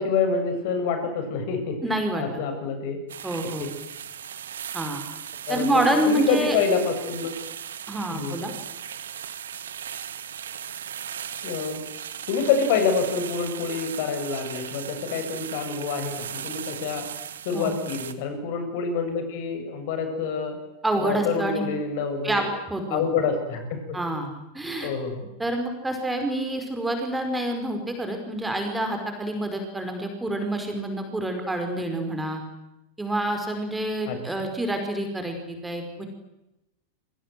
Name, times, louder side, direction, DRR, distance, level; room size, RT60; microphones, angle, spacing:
voice 1, 0.0-1.8 2.2-3.0 5.5-7.3 8.1-8.4 11.4-11.8 12.3-17.0 17.4-20.6 21.0-22.5 22.9-24.0 24.8-25.2 34.1-34.2, left 5 dB, 50° left, 6 dB, 7.4 m, -27 dB
voice 2, 1.8-2.2 3.2-3.7 4.7-5.0 5.5-6.6 7.9-8.5 17.5-17.7 20.8-21.6 22.2-23.0 23.9-24.9 25.4-32.4 33.0-36.1, right 1 dB, 5° right, 5 dB, 5.4 m, -27 dB
sound 1, 3.1-18.1, right 9 dB, 65° right, 2.0 m, -37 dB
29.5 x 25.0 x 7.9 m, 0.91 s
figure-of-eight pair, 90°, 0 cm